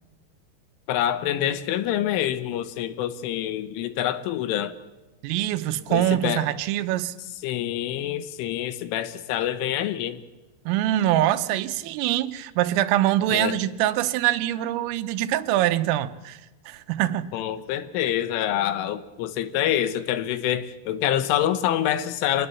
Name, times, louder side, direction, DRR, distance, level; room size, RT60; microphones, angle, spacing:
voice 1, 0.9-4.8 5.9-6.5 7.4-10.2 13.3-13.5 17.3-22.5, left 11 dB, 80° left, 3.6 m, -26 dB
voice 2, 5.2-7.2 10.7-16.4 16.7-17.3, right 13 dB, 90° right, 3.6 m, -24 dB
25.5 x 19.5 x 7.1 m
omnidirectional pair, 5.8 m